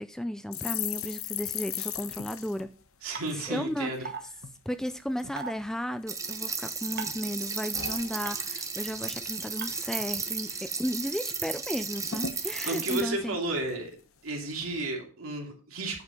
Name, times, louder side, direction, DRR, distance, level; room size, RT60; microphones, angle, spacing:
voice 1, 0.0-2.7 3.3-4.1 4.7-13.4, equal, ahead, 11 dB, 0.4 m, -34 dB
sound 1, 0.5-4.0 4.4-4.6 4.9-5.5 6.0-6.8 7.1-8.8 9.1-9.3 9.6-10.1 10.5-10.6 10.9-11.5 11.8-11.9 12.1-14.0 14.5-14.8, left 9 dB, 65° left, 1.0 m, -39 dB
voice 2, 3.0-4.1 12.6-13.9 14.2-16.0, right 2 dB, 70° right, 1 dB, 2.6 m, -32 dB
sound 2, 3.1-3.2 4.0-4.2 5.4-5.5 7.0-7.2 8.2-8.3 9.6-9.7, right 5 dB, 45° right, 1.2 m, -36 dB
sound 3, 6.1-13.0, right 5 dB, 15° right, 0.9 m, -34 dB
9.6 x 5.3 x 5.1 m, 0.38 s
head